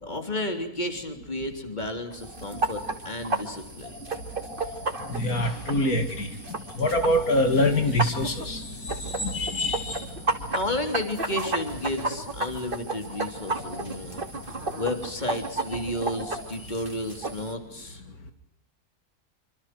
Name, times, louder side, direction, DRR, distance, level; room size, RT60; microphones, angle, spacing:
voice 1, 0.0-3.9 10.5-14.2 14.8-18.0, left 1 dB, 30° left, 6 dB, 3.6 m, -32 dB
sound 1, 2.1-17.5, right 2 dB, 35° right, 2.7 m, -33 dB
voice 2, 5.1-6.3 6.8-10.1, left 1 dB, 75° left, 7 dB, 2.9 m, -25 dB
26.0 x 26.0 x 6.1 m, 0.74 s
omnidirectional pair, 1.6 m